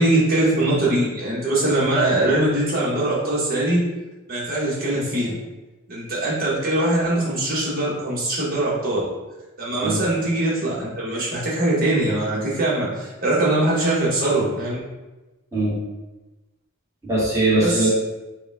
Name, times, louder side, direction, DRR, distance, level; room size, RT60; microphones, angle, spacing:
voice 1, 0.0-3.8 4.3-5.3 5.9-9.0 9.6-14.8 17.6-17.9, right 1 dB, 45° right, -6 dB, 1.5 m, -22 dB
voice 2, 17.0-17.9, right 2 dB, 15° right, -7 dB, 1.4 m, -20 dB
5.1 x 2.4 x 3.5 m, 1.1 s
head